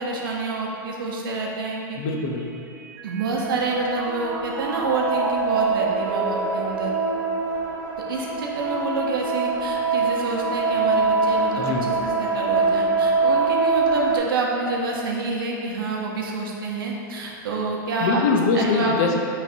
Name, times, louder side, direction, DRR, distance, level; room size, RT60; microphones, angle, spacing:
voice 1, 0.0-2.0 3.0-6.9 8.1-18.2 18.5-19.0, right 3 dB, 85° right, -1 dB, 0.8 m, -28 dB
Mallet percussion, 1.7-8.1, right 6 dB, 55° right, 0.4 m, -35 dB
voice 2, 2.0-2.6 11.6-11.9 18.0-19.2, left 4 dB, 50° left, 1 dB, 0.5 m, -23 dB
sound 1, 3.3-14.2, right 4 dB, 25° right, 1.1 m, -24 dB
5.0 x 3.2 x 2.6 m, 2.7 s
supercardioid pair, 150°, 11 cm